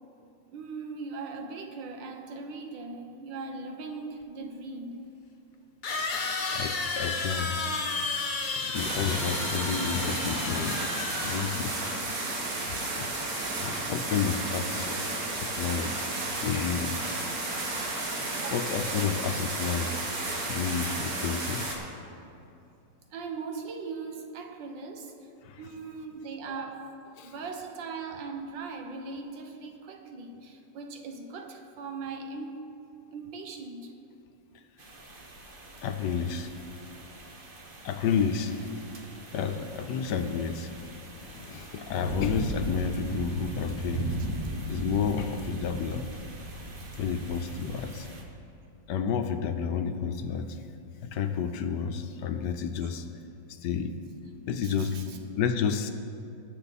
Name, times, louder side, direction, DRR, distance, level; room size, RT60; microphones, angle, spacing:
voice 1, 0.5-5.1 18.3-18.7 23.1-25.3 25.6-32.6 33.1-33.9 54.6-55.2, right 4 dB, 85° right, 4 dB, 1.8 m, -39 dB
sound 1, 4.2-4.3 5.8-12.0, left 3 dB, 45° left, 0.6 m, -33 dB
voice 2, 6.5-7.6 8.0-12.1 12.5-13.1 13.6-15.0 15.3-17.0 18.5-20.1 20.5-21.9 25.4-25.6 27.2-27.3 35.8-36.5 37.8-38.7 39.3-40.7 41.1-44.1 44.7-46.1 47.0-48.1 48.9-50.6 51.0-53.0 53.6-53.9 54.5-55.0 55.4-55.9, left 7 dB, 70° left, 8 dB, 1.2 m, -31 dB
sound 2, 8.7-21.8, right 2 dB, 55° right, 1.9 m, -33 dB
sound 3, 34.8-48.2, right 1 dB, 35° right, 1.1 m, -38 dB
20.5 x 6.9 x 4.1 m, 2.6 s
omnidirectional pair, 2.0 m